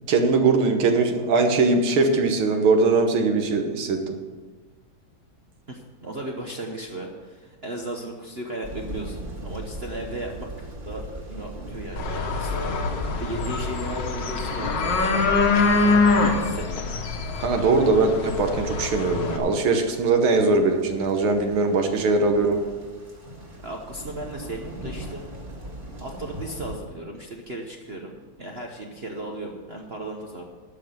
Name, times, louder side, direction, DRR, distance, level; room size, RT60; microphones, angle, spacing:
voice 1, 0.1-4.2 17.4-22.6, right 3 dB, 75° right, 5 dB, 2.0 m, -21 dB
voice 2, 5.7-17.0 23.6-25.3 26.0-30.4, right 1 dB, 45° right, 1 dB, 0.8 m, -36 dB
sound 1, 8.6-26.8, right 1 dB, 25° right, 1.8 m, -39 dB
sound 2, 12.0-19.4, left 3 dB, 60° left, 1.8 m, -24 dB
12.0 x 5.8 x 7.9 m, 1.4 s
omnidirectional pair, 2.3 m